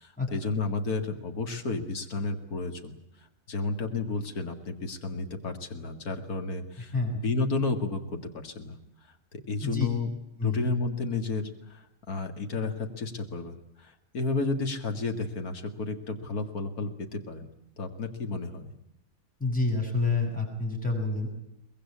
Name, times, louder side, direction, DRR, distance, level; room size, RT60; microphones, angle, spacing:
voice 1, 0.0-3.0 3.5-6.9 7.2-8.8 9.5-10.1 10.4-17.5 17.8-18.7, left 3 dB, 75° left, 5 dB, 2.5 m, -32 dB
voice 2, 6.8-7.2 9.6-9.9 10.4-10.6 19.4-21.3, left 3 dB, 5° left, 0 dB, 7.4 m, -28 dB
24.0 x 21.0 x 8.6 m, 0.84 s
omnidirectional pair, 1.6 m